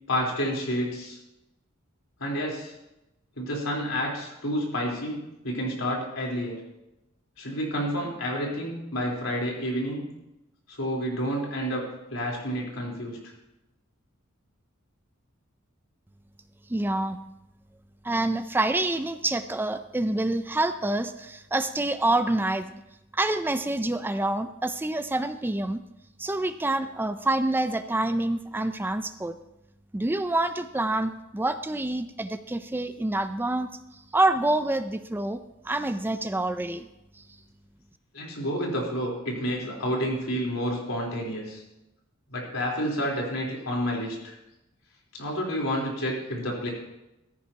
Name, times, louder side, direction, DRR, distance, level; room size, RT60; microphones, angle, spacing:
voice 1, 0.1-1.2 2.2-2.7 3.4-6.6 7.4-10.1 10.7-13.2 38.1-41.6 42.3-44.3 45.1-46.7, equal, 85° left, -2 dB, 3.8 m, -29 dB
voice 2, 16.7-17.2 18.0-22.8 23.1-25.8 26.2-29.4 29.9-33.7 34.1-35.4 35.6-36.9, right 2 dB, 10° right, 10 dB, 0.4 m, -27 dB
15.0 x 14.0 x 2.9 m, 0.93 s
head